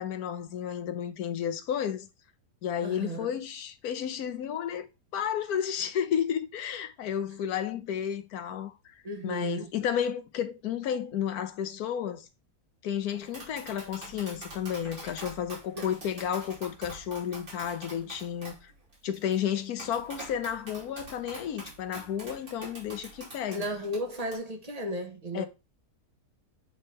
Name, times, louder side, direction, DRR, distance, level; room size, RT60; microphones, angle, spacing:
voice 1, 0.0-2.1 2.6-4.9 5.1-12.3 12.8-18.7 19.0-23.7 25.3-25.4, left 9 dB, 65° left, 1.3 m, -32 dB
voice 2, 2.8-3.3 9.0-9.7 15.7-15.9 23.5-25.4, right 1 dB, 25° right, 1.2 m, -34 dB
Tap, 13.1-24.4, right 2 dB, 60° right, 3.8 m, -45 dB
8.5 x 3.6 x 4.3 m
omnidirectional pair, 1.8 m